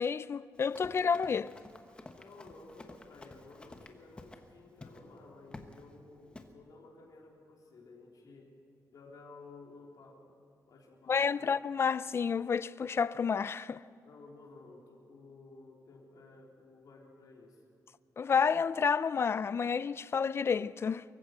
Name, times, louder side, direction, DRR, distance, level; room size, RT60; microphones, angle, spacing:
voice 1, 0.0-1.5 11.1-13.8 18.2-21.0, left 6 dB, 40° left, 0.4 m, -30 dB
Run, 0.5-4.5 4.8-5.0 5.5-5.8 6.4-6.5, left 2 dB, 15° left, 1.1 m, -51 dB
voice 2, 2.1-8.5 8.9-10.4 10.7-11.5 14.0-17.6, left 3 dB, 70° left, 3.8 m, -54 dB
24.0 x 15.0 x 8.0 m
wide cardioid pair, 155°, 7 cm